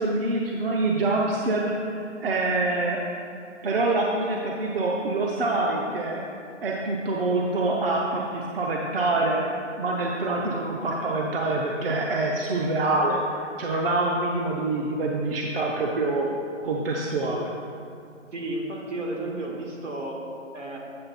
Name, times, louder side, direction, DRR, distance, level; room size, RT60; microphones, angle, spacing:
voice 1, 0.0-3.0 3.6-6.2 6.6-16.3 16.6-17.5, right 2 dB, 50° right, -1 dB, 0.8 m, -26 dB
voice 2, 18.3-20.3 20.5-20.8, right 2 dB, 75° right, -1 dB, 1.8 m, -32 dB
8.7 x 5.8 x 4.1 m, 2.5 s
hypercardioid pair, 160°, 38 cm